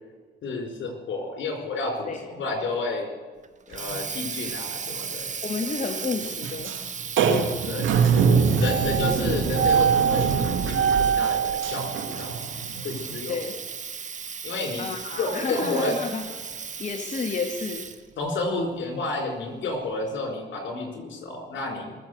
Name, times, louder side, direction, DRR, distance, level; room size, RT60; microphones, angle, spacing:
voice 1, 0.4-3.1 3.7-5.3 7.7-8.3 8.6-12.5 12.8-13.3 14.4-14.8 15.2-15.9 18.2-22.0, left 2 dB, 70° left, 4 dB, 4.8 m, -31 dB
Water tap faucet, 3.4-18.1, right 6 dB, 40° right, 1.3 m, -36 dB
sound 1, 3.9-4.1 4.5-4.6 4.9-5.0 6.4-6.8 7.1-13.2, right 6 dB, 80° right, 2.1 m, -23 dB
voice 2, 5.4-6.8 13.3-13.5 14.8-16.3 16.8-17.9, left 4 dB, 40° left, 3 dB, 1.8 m, -30 dB
22.5 x 7.6 x 8.0 m, 1.4 s
cardioid pair, 90°, 20 cm